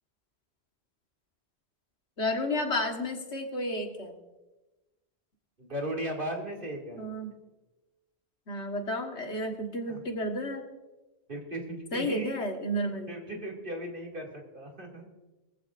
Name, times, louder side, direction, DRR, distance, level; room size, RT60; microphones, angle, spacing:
voice 1, 2.2-4.1 7.0-7.3 8.5-10.7 11.9-13.1, left 1 dB, 85° left, 3 dB, 1.9 m, -32 dB
voice 2, 5.6-7.1 9.9-10.0 11.3-12.3 13.1-15.1, right 1 dB, 50° right, -1 dB, 2.8 m, -37 dB
21.0 x 14.5 x 2.6 m, 1.1 s
omnidirectional pair, 1.1 m